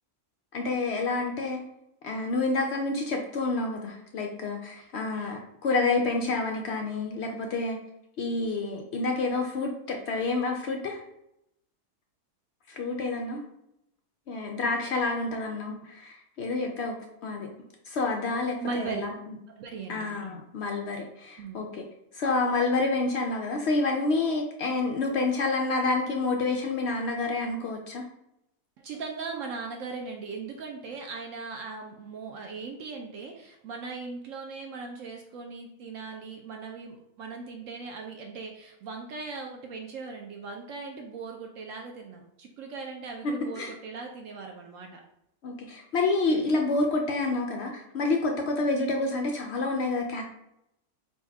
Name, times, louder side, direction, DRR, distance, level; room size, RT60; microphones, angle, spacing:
voice 1, 0.5-1.6 2.0-7.8 8.2-11.0 12.7-13.4 14.3-17.0 17.2-17.5 17.9-19.1 19.9-21.8 22.1-28.0 43.2-43.7 45.4-50.2, left 3 dB, 75° left, 2 dB, 0.6 m, -28 dB
voice 2, 18.6-19.0 19.6-20.1 21.4-21.7 28.8-45.0, right 4 dB, 70° right, 2 dB, 0.8 m, -39 dB
4.2 x 2.3 x 4.5 m, 0.81 s
omnidirectional pair, 1.7 m